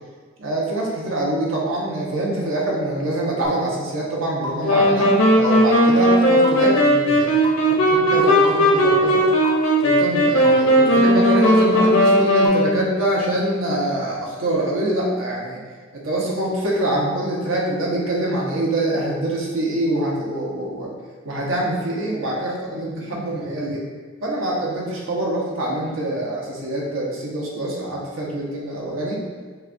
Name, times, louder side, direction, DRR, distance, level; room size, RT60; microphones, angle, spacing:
voice 1, 0.4-9.3 9.8-15.6 15.9-20.9 21.2-23.8 24.2-29.2, right 1 dB, 75° right, -3 dB, 1.0 m, -25 dB
sound 1, 3.4-3.5 4.4-4.5 5.4-5.5 6.4-6.5 7.4-7.5 8.4-8.5 9.4-9.5 10.4-10.5 11.4-11.5 12.4-12.5, left 3 dB, 55° right, 0.8 m, -28 dB
sound 2, 4.6-13.1, equal, 85° left, 0.7 m, -17 dB
6.3 x 2.3 x 2.6 m, 1.5 s
head